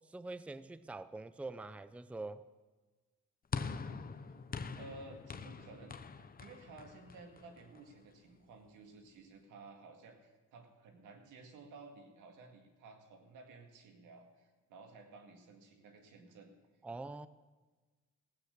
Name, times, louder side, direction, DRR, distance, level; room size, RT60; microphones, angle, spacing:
voice 1, 0.0-2.4 16.8-17.3, right 2 dB, 5° right, 15 dB, 0.5 m, -44 dB
sound 1, 3.5-7.9, left 5 dB, 30° left, 0.8 m, -43 dB
voice 2, 4.8-16.5, right 3 dB, 90° right, 4 dB, 2.2 m, -55 dB
16.0 x 8.9 x 6.6 m, 1.3 s
cardioid pair, 90°, 30 cm